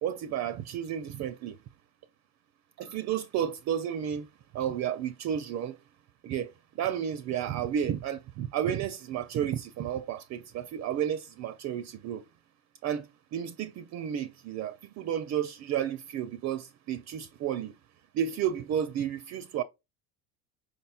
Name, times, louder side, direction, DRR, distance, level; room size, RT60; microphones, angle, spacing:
voice 1, 0.0-1.6 2.8-4.3 4.5-5.8 6.2-12.2 12.8-17.7 18.1-19.6, right 9 dB, 40° right, 0.4 m, -32 dB
5.0 x 4.3 x 2.3 m
supercardioid pair, 90°, 43 cm